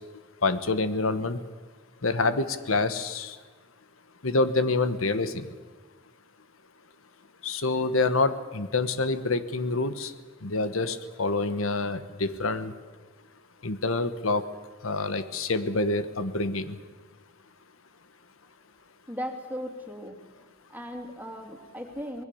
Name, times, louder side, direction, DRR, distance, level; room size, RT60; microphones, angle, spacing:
voice 1, 0.4-1.4 2.0-3.4 4.2-5.5 7.4-10.1 10.4-12.7 13.6-14.4 14.8-16.8, left 3 dB, 85° left, 12 dB, 1.3 m, -27 dB
voice 2, 19.1-20.2 20.7-22.3, equal, 10° right, 3 dB, 3.0 m, -37 dB
25.5 x 20.5 x 7.1 m, 1.4 s
head